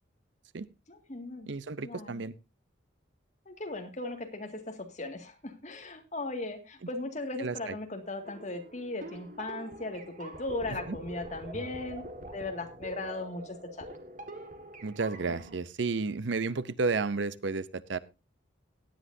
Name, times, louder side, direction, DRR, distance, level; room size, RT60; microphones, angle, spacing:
voice 1, 0.9-1.5 1.8-2.2 3.5-12.0 12.3-14.0, left 2 dB, 35° left, 4 dB, 2.1 m, -38 dB
voice 2, 1.5-2.3 7.4-7.8 10.9-11.0 14.8-18.0, right 4 dB, 65° right, 17 dB, 0.6 m, -32 dB
sound 1, 8.2-15.6, right 1 dB, 40° right, 1.7 m, -45 dB
17.5 x 10.0 x 2.7 m, 0.27 s
head